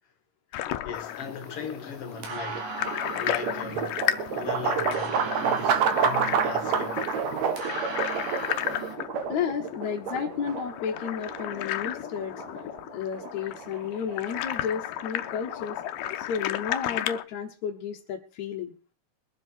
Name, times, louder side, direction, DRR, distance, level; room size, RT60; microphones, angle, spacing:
sound 1, 0.5-17.2, left 13 dB, 85° left, 2.4 m, -34 dB
voice 1, 0.5-4.0 4.3-7.1, left 5 dB, 50° left, 2.4 m, -39 dB
sound 2, 0.9-8.9, right 5 dB, 85° right, 4.0 m, -40 dB
sound 3, 2.2-16.3, right 7 dB, 65° right, 2.4 m, -30 dB
voice 2, 9.3-12.3 12.9-15.8 16.2-18.7, left 7 dB, 65° left, 2.3 m, -32 dB
22.5 x 7.6 x 4.4 m
omnidirectional pair, 3.7 m